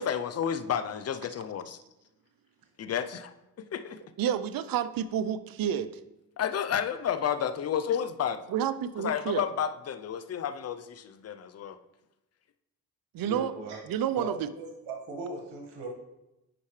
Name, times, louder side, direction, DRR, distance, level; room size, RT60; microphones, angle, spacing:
voice 1, 0.0-1.8 2.8-4.0 6.4-8.4 9.0-11.8, left 8 dB, 40° left, 10 dB, 0.6 m, -31 dB
voice 2, 4.2-5.9 8.5-9.4 13.1-13.5 13.9-14.5, right 9 dB, 65° right, 14 dB, 0.6 m, -29 dB
voice 3, 13.2-13.8 14.2-15.9, right 2 dB, 85° right, 0 dB, 1.7 m, -38 dB
8.7 x 5.6 x 3.2 m, 0.96 s
supercardioid pair, 55°, 39 cm